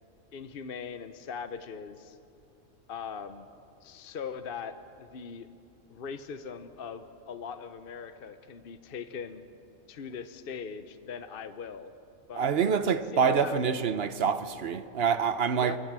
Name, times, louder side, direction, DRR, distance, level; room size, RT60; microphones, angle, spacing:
voice 1, 0.3-2.2 2.9-3.5 3.8-5.5 5.9-9.4 9.9-11.9 12.3-13.7 15.6-15.8, left 6 dB, 50° left, 0.9 m, -40 dB
voice 2, 12.4-15.8, right 6 dB, 50° right, 0.9 m, -26 dB
25.0 x 16.5 x 7.5 m
omnidirectional pair, 1.4 m